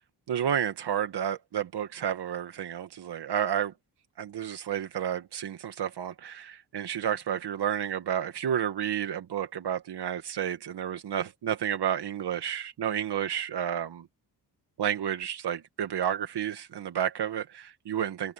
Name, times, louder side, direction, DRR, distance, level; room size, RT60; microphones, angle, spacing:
voice 1, 0.3-3.7 4.2-14.1 14.8-18.3, right 9 dB, 80° right, 1.6 m, -31 dB
wide cardioid pair, 120°, 40 cm